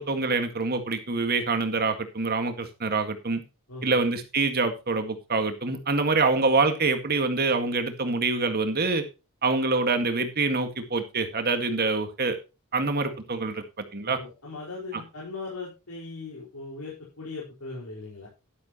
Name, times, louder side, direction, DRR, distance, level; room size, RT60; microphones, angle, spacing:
voice 1, 0.0-3.4 3.8-9.0 9.4-12.4 12.7-13.6 13.9-14.2, right 3 dB, 45° right, 8 dB, 1.9 m, -25 dB
voice 2, 3.7-4.0 14.0-18.3, left 3 dB, 85° left, -5 dB, 4.9 m, -39 dB
12.0 x 11.5 x 3.0 m, 0.29 s
head